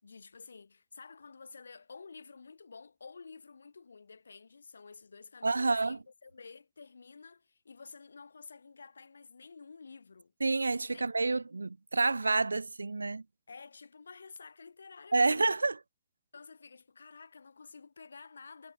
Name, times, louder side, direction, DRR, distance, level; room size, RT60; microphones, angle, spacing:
voice 1, 0.0-10.3 10.9-11.0 13.5-15.5 16.3-18.7, left 4 dB, 75° left, 6.3 m, -51 dB
voice 2, 5.4-6.0 10.4-13.2 15.1-15.8, right 3 dB, 80° right, 0.4 m, -28 dB
figure-of-eight pair, 110°, 0 cm